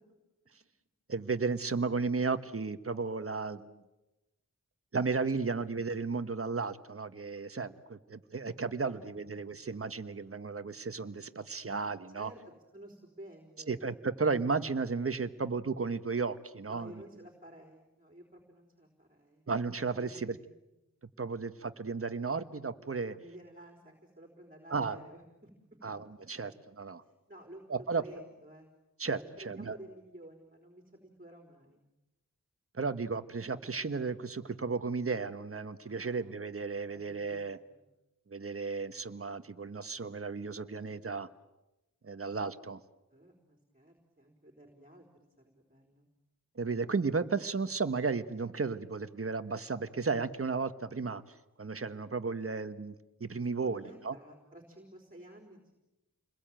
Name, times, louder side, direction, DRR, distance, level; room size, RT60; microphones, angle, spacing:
voice 1, 1.1-3.7 4.9-12.3 13.7-17.0 19.5-20.4 21.2-23.1 24.7-25.0 25.8-26.5 26.8-27.0 27.7-28.0 29.0-29.8 32.7-37.6 38.3-41.3 42.0-42.8 46.5-51.2 51.6-52.9 53.2-54.1, right 4 dB, 45° right, 11 dB, 1.3 m, -34 dB
voice 2, 8.8-9.3 12.1-12.4 12.7-13.8 16.7-19.5 19.9-20.5 23.1-25.5 27.0-28.7 29.2-31.8 35.8-36.3 36.7-37.4 37.7-37.8 43.1-45.1 45.4-46.1 53.6-55.7, right 1 dB, 25° right, 3 dB, 4.3 m, -52 dB
29.0 x 22.0 x 9.0 m, 0.98 s
wide cardioid pair, 75°, 32 cm